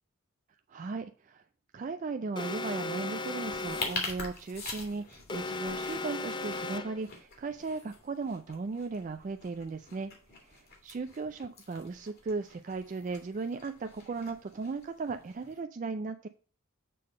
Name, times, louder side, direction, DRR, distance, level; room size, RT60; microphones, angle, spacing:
voice 1, 0.7-1.4 1.7-10.1 10.4-16.3, right 4 dB, 40° right, 7 dB, 0.3 m, -37 dB
Alarm, 2.4-4.1 5.3-7.1, left 2 dB, 20° left, 0.5 m, -36 dB
sound 1, 3.5-15.6, left 3 dB, 50° left, 2.2 m, -44 dB
6.8 x 3.7 x 6.3 m, 0.41 s
head